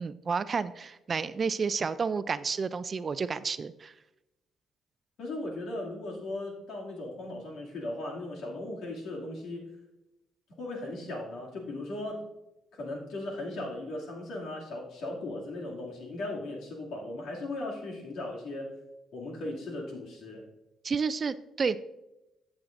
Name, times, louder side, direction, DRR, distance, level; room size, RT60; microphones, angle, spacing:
voice 1, 0.0-3.9 20.8-21.8, right 5 dB, 40° right, 15 dB, 0.4 m, -30 dB
voice 2, 5.2-9.7 10.6-12.2 12.7-18.7 19.1-20.5, left 2 dB, 75° left, -2 dB, 2.4 m, -37 dB
14.0 x 7.2 x 2.6 m, 0.93 s
cardioid pair, 90°, 0 cm